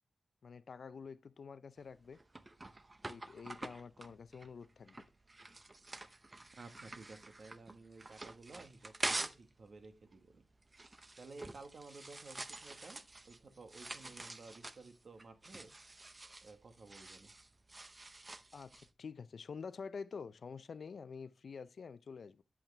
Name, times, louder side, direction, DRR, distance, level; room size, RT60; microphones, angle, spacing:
voice 1, 0.4-2.2 3.0-5.1 18.5-22.4, left 5 dB, 70° left, 0.4 m, -48 dB
sound 1, 1.8-9.5 9.8-18.9, right 2 dB, 30° right, 0.7 m, -46 dB
voice 2, 6.5-10.4 11.2-15.7 16.4-17.3, right 3 dB, 65° right, 1.5 m, -54 dB
8.7 x 8.1 x 3.3 m
wide cardioid pair, 90°, 0 cm